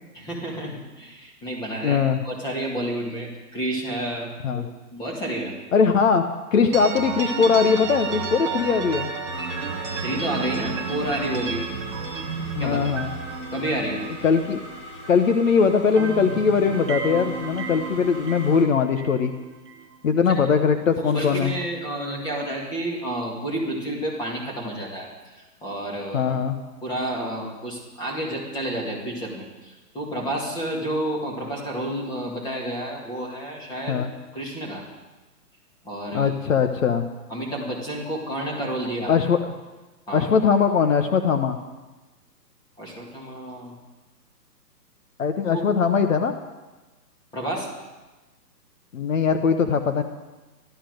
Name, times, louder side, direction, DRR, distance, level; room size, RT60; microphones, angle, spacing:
voice 1, 0.1-5.6 10.0-11.6 12.6-12.8 13.5-14.0 20.3-20.5 21.0-26.3 26.8-34.0 34.3-34.8 35.8-36.3 37.3-39.2 40.1-40.3 42.8-43.7 45.5-45.6 47.3-47.7, right 1 dB, 10° left, -2 dB, 2.1 m, -30 dB
voice 2, 1.8-2.2 4.4-4.7 5.7-6.2 6.5-9.1 12.6-13.1 14.2-14.6 15.1-19.3 20.0-21.5 26.1-26.6 33.9-34.1 36.1-37.1 39.1-39.4 40.1-41.6 45.2-46.3 48.9-50.0, left 6 dB, 55° left, 7 dB, 1.0 m, -20 dB
sound 1, 6.7-15.5 15.7-19.9, right 5 dB, 20° right, 0.7 m, -32 dB
sound 2, 9.3-18.7, equal, 35° left, 3.0 m, -42 dB
13.0 x 13.0 x 6.4 m, 1.2 s
hypercardioid pair, 165°, 49 cm